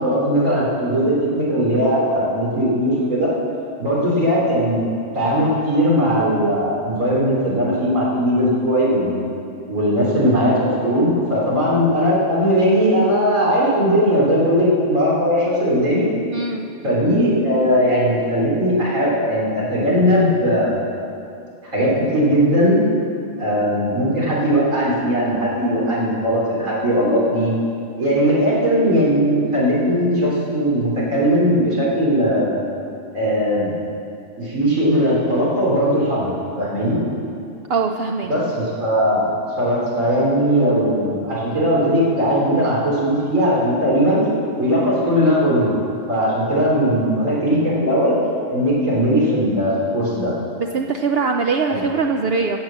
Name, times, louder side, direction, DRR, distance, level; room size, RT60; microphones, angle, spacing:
voice 1, 0.0-3.3 3.8-4.9 5.1-9.2 9.7-16.1 16.8-20.9 21.7-22.8 23.4-27.5 28.0-32.6 33.1-33.7 34.4-37.0 38.3-44.2 44.6-45.7 46.1-48.2 48.5-50.3 51.7-51.8, equal, 85° right, -6 dB, 3.9 m, -19 dB
voice 2, 16.3-16.7 37.7-38.3 50.6-52.6, right 4 dB, 60° right, 3 dB, 0.7 m, -22 dB
15.5 x 6.4 x 7.4 m, 2.6 s
omnidirectional pair, 1.3 m